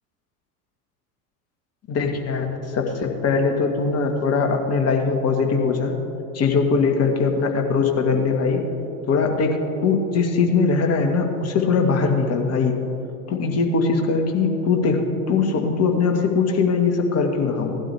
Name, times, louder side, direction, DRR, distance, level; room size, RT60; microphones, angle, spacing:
voice 1, 1.9-5.9 6.3-8.6 9.1-12.8 13.3-15.0 15.3-17.8, left 4 dB, 35° left, 3 dB, 1.9 m, -21 dB
17.0 x 12.0 x 3.5 m, 3.0 s
hypercardioid pair, 80°, 45 cm